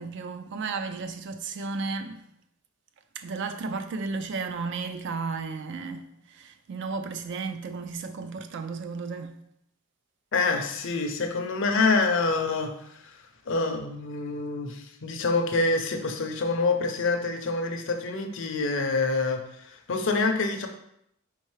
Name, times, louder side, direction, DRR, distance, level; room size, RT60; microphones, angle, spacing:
voice 1, 0.0-2.2 3.2-9.3, right 4 dB, 55° right, 0.4 m, -34 dB
voice 2, 10.3-13.2 13.5-20.7, left 3 dB, 60° left, 0.6 m, -26 dB
4.4 x 3.6 x 3.1 m
head